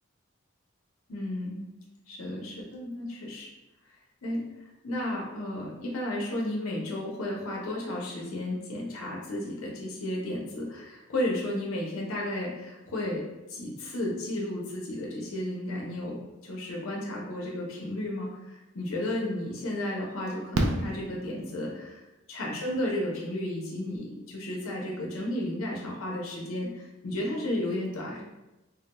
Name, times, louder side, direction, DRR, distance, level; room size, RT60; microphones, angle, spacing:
voice 1, 1.1-1.7 2.1-3.5 4.2-4.4 4.8-22.0 22.3-28.2, left 1 dB, 80° left, -3 dB, 0.7 m, -33 dB
Fireworks, 18.9-19.0 20.5-21.9 23.6-23.7 23.9-24.0, right 1 dB, 85° right, 0.4 m, -30 dB
3.4 x 2.2 x 2.9 m, 1.0 s
head